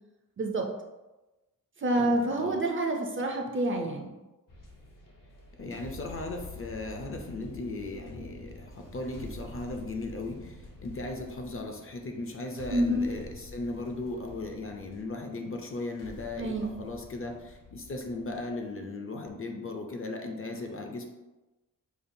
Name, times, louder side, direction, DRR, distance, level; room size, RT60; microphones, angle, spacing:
voice 1, 0.4-0.7 1.8-4.1 12.7-13.1 16.4-16.7, right 1 dB, 35° right, 2 dB, 0.4 m, -28 dB
voice 2, 1.9-2.6 5.6-21.0, left 2 dB, 40° left, 3 dB, 0.4 m, -37 dB
sound 1, 4.5-18.8, left 1 dB, 65° left, 0.8 m, -48 dB
5.1 x 2.2 x 2.6 m, 1.1 s
wide cardioid pair, 115°, 35 cm